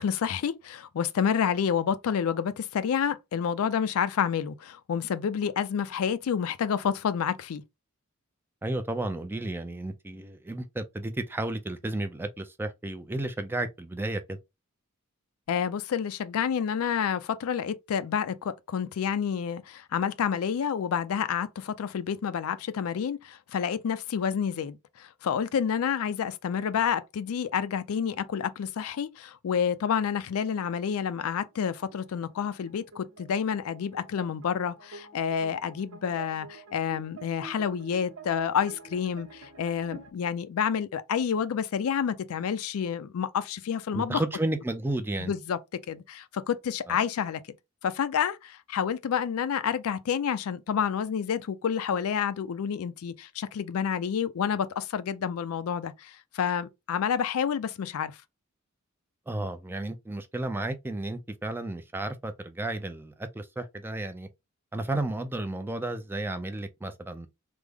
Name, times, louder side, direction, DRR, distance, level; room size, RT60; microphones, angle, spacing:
voice 1, 0.0-7.6 15.5-44.2 45.2-45.6 45.9-47.4 47.8-58.2, left 7 dB, 75° left, 0.4 m, -29 dB
voice 2, 8.6-14.4 43.9-45.3 46.9-47.0 59.3-64.3 64.7-67.3, right 2 dB, 10° right, 0.3 m, -33 dB
sound 1, 30.8-40.1, right 3 dB, 75° right, 0.9 m, -48 dB
3.4 x 2.0 x 3.3 m
head